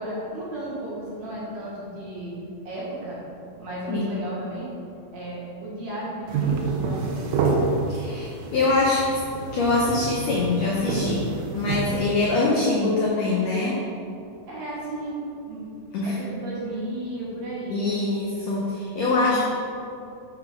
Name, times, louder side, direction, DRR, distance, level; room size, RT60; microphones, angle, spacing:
voice 1, 0.0-2.4 2.6-3.2 3.6-4.7 5.1-7.2 14.5-15.6 16.0-18.1 19.2-19.4, right 1 dB, 60° right, -7 dB, 2.4 m, -34 dB
sound 1, 6.3-12.1, right 4 dB, 75° right, 2.1 m, -28 dB
voice 2, 7.9-9.2 9.5-13.8 15.9-16.1 17.7-19.5, left 3 dB, 85° left, -4 dB, 1.5 m, -24 dB
5.9 x 3.8 x 5.7 m, 2.6 s
omnidirectional pair, 4.1 m